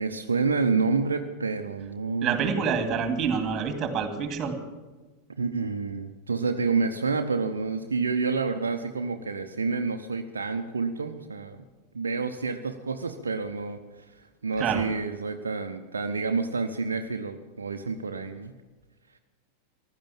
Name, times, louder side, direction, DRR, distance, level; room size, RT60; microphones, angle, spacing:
voice 1, 0.0-2.5 5.3-11.6 11.9-18.5, right 4 dB, 75° right, 5 dB, 0.8 m, -29 dB
voice 2, 2.2-4.5 14.6-14.8, right 6 dB, 30° right, 7 dB, 2.5 m, -27 dB
15.5 x 12.5 x 7.2 m, 1.3 s
figure-of-eight pair, 90°, 0 cm